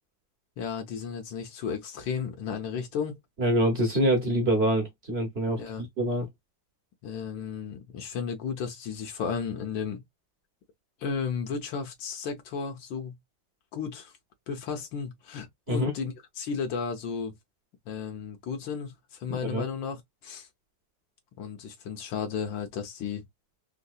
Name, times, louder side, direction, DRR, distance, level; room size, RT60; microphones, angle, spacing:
voice 1, 0.6-3.2 5.6-5.8 7.0-10.0 11.0-13.1 13.7-14.1 14.5-17.3 17.9-20.5 21.4-23.2, left 6 dB, 80° left, 1.6 m, -34 dB
voice 2, 3.4-6.3 15.7-15.9 19.3-19.7, equal, 50° right, 0.8 m, -26 dB
3.7 x 2.7 x 2.3 m
omnidirectional pair, 2.0 m